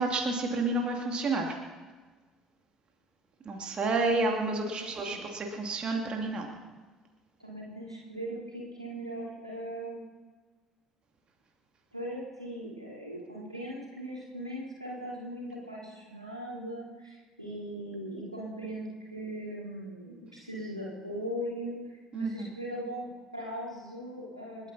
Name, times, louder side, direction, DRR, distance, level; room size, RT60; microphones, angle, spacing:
voice 1, 0.0-1.6 3.5-6.5 22.1-22.5, right 3 dB, 35° right, 1 dB, 2.5 m, -30 dB
voice 2, 4.8-5.2 7.4-10.0 11.9-24.7, equal, 90° right, -5 dB, 3.7 m, -39 dB
29.5 x 10.0 x 4.2 m, 1.4 s
figure-of-eight pair, 55°, 3 cm